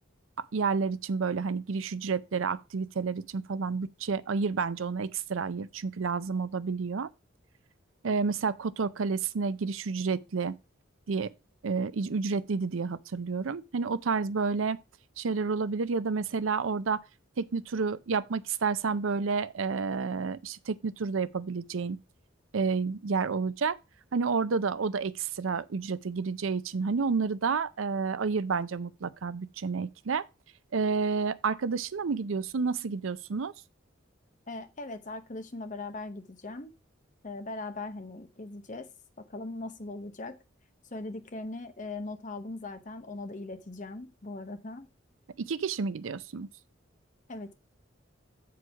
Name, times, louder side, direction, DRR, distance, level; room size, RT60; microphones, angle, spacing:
voice 1, 0.4-7.1 8.0-10.6 11.1-11.3 11.6-14.8 15.2-17.0 17.4-22.0 22.5-23.8 24.1-30.2 30.7-33.5 45.4-46.5, right 5 dB, 80° right, 0.5 m, -30 dB
voice 2, 34.5-36.7 37.2-38.9 39.2-40.4 40.9-44.9 47.3-47.5, left 2 dB, 40° left, 0.9 m, -39 dB
7.8 x 4.7 x 4.7 m
head